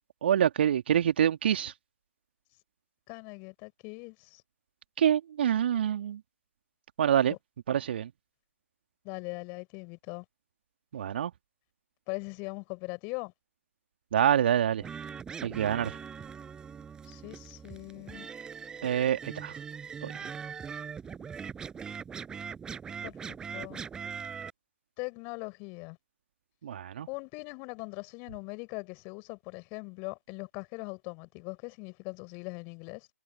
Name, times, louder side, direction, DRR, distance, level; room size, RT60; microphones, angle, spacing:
voice 1, 0.2-1.7 5.0-6.2 7.0-7.3 7.7-8.1 10.9-11.3 14.1-14.8 15.4-16.0 18.8-19.6 20.0-20.1 26.6-27.1, right 9 dB, 45° right, 2.6 m, -26 dB
voice 2, 3.1-4.4 9.0-10.2 12.1-13.3 17.0-18.3 23.0-23.8 25.0-26.0 27.1-33.1, left 33 dB, 25° left, 4.9 m, -41 dB
sound 1, 14.8-24.5, right 6 dB, 10° right, 5.2 m, -41 dB
figure-of-eight pair, 140°, 8 cm